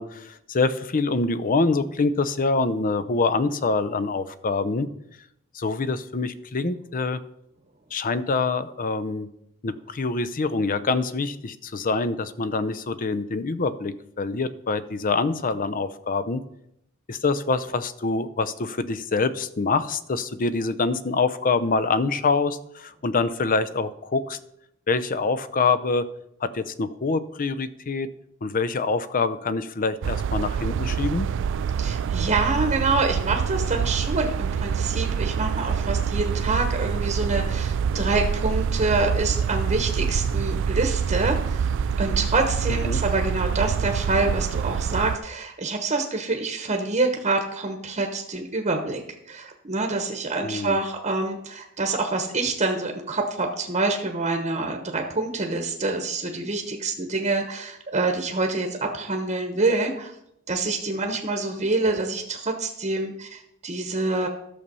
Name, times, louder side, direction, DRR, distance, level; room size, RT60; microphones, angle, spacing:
voice 1, 0.0-4.9 5.5-7.2 7.9-9.3 9.6-16.4 17.1-24.4 24.9-26.1 26.4-28.1 28.4-31.3 42.8-43.0 50.4-50.8, left 3 dB, 40° left, 14 dB, 0.6 m, -25 dB
sound 1, 30.0-45.2, right 6 dB, 60° right, 0.3 m, -26 dB
voice 2, 31.8-41.7 42.0-49.0 49.3-60.1 60.5-64.3, right 3 dB, 30° right, 3 dB, 1.1 m, -26 dB
11.5 x 6.9 x 5.4 m, 0.79 s
head